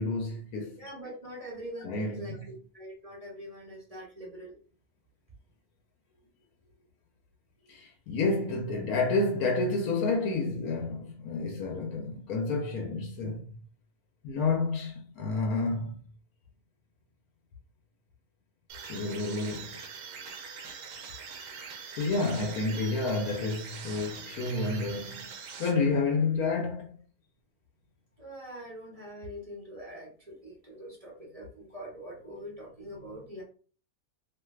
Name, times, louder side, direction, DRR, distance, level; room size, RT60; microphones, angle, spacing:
voice 1, 0.0-0.8 1.8-2.3 7.7-13.6 14.2-16.0 18.9-19.8 22.0-25.3 25.6-26.9, left 3 dB, 80° left, 1.1 m, -30 dB
voice 2, 0.8-4.6 28.2-33.4, equal, 30° right, 0.8 m, -43 dB
sound 1, 18.7-26.2, right 6 dB, 70° right, 0.9 m, -43 dB
3.1 x 2.7 x 2.3 m
omnidirectional pair, 1.6 m